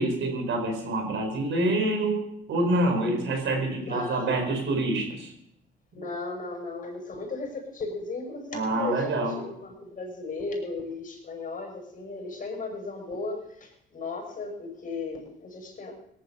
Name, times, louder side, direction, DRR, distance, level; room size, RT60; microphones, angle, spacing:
voice 1, 0.0-2.2 2.5-5.3 8.5-9.4, right 2 dB, 70° right, 4 dB, 4.6 m, -26 dB
voice 2, 3.8-4.7 5.9-15.9, left 3 dB, 45° left, 1 dB, 6.4 m, -36 dB
18.0 x 11.5 x 5.5 m, 0.77 s
cardioid pair, 90°, 20 cm